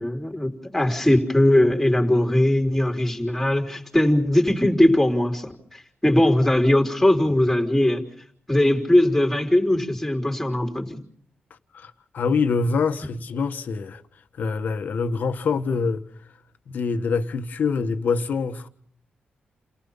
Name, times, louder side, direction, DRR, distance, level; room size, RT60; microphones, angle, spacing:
voice 1, 0.0-8.0 8.5-11.0, left 1 dB, 5° left, 3.7 m, -20 dB
voice 2, 11.7-14.0 14.4-16.0 16.7-18.7, left 5 dB, 60° left, 1.6 m, -25 dB
30.0 x 18.5 x 5.7 m
wide cardioid pair, 160°, 3 cm